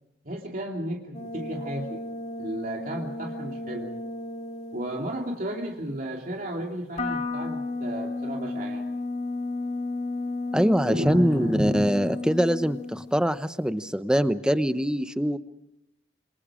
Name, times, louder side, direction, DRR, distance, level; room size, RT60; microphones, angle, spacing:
voice 1, 0.2-2.0 2.4-3.9 4.7-8.8 10.8-12.0, right 1 dB, 50° right, 0 dB, 2.8 m, -33 dB
sound 1, 1.1-5.2 7.0-13.3, left 2 dB, 40° left, 2.4 m, -33 dB
voice 2, 10.5-15.4, equal, 5° right, 11 dB, 0.8 m, -23 dB
28.0 x 26.0 x 5.0 m, 0.85 s
head